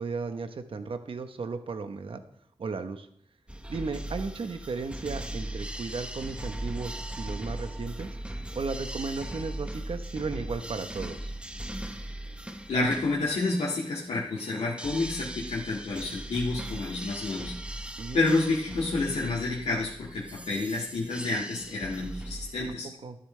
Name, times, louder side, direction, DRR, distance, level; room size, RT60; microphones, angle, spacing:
voice 1, 0.0-2.2 2.6-3.1 3.7-8.2 8.5-11.3 18.0-18.2 22.8-23.2, right 4 dB, 55° right, 8 dB, 1.0 m, -35 dB
sound 1, 3.5-22.8, right 1 dB, 10° right, 0.9 m, -39 dB
voice 2, 12.7-17.5 18.1-22.9, left 3 dB, 85° left, -5 dB, 1.9 m, -29 dB
12.5 x 11.0 x 3.3 m, 0.70 s
wide cardioid pair, 100°, 11 cm